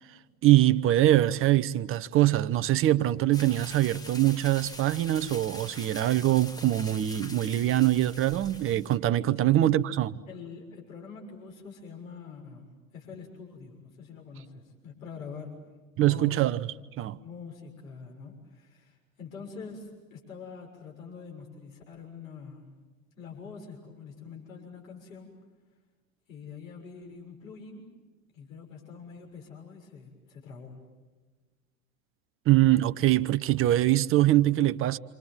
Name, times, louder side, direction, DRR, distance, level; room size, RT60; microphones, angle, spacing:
voice 1, 0.4-10.2 16.0-17.2 32.5-35.0, right 14 dB, 30° right, 1.0 m, -23 dB
sound 1, 3.3-9.0, left 2 dB, 10° left, 1.6 m, -44 dB
voice 2, 10.3-12.7 12.9-15.5 16.0-16.4 17.2-22.7 23.2-25.3 26.3-27.8 28.3-30.8, left 5 dB, 70° left, 6.8 m, -45 dB
27.5 x 27.0 x 7.5 m
figure-of-eight pair, 80°, 41 cm